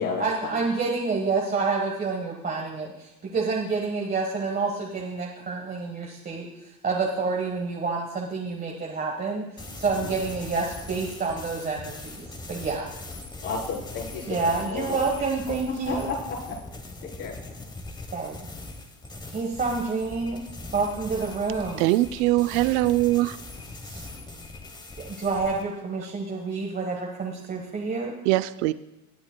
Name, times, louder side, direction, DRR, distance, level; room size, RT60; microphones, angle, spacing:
voice 1, 0.2-12.9 14.3-16.1 18.1-18.4 19.3-20.4 20.7-21.9 25.0-28.1, right 4 dB, 20° right, -1 dB, 1.3 m, -28 dB
sound 1, 9.6-25.7, left 2 dB, 10° left, 1.0 m, -41 dB
voice 2, 13.4-15.0 15.9-16.6 17.0-17.3, left 5 dB, 50° left, -2 dB, 3.9 m, -32 dB
voice 3, 21.8-23.4 23.9-24.1 28.3-28.7, right 17 dB, 65° right, 14 dB, 0.5 m, -22 dB
18.0 x 8.7 x 2.2 m, 0.91 s
supercardioid pair, 110°, 42 cm